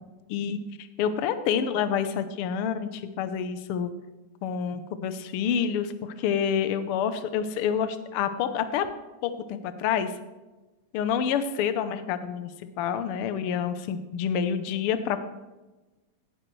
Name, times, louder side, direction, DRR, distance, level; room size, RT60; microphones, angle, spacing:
voice 1, 0.3-3.9 4.4-8.9 9.2-10.1 10.9-15.2, left 8 dB, 80° left, 10 dB, 1.2 m, -28 dB
17.0 x 12.0 x 3.2 m, 1.1 s
omnidirectional pair, 3.4 m